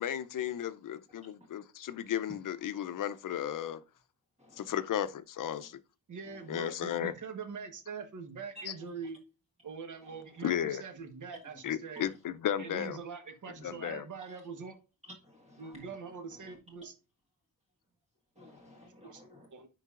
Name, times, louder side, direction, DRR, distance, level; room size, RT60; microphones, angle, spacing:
voice 1, 0.0-3.8 4.6-5.8 6.5-7.1 8.7-8.8 10.4-10.8 11.6-13.0 13.6-14.0, left 10 dB, 60° left, 0.6 m, -34 dB
voice 2, 4.4-4.7 8.5-8.6 15.2-15.8 18.4-19.5, equal, 20° right, 1.5 m, -54 dB
voice 3, 6.1-9.2 9.6-12.0 12.6-14.8 15.6-16.9 19.0-19.2 19.5-19.7, right 5 dB, 55° right, 1.3 m, -43 dB
10.0 x 3.9 x 2.4 m
wide cardioid pair, 175°, 35 cm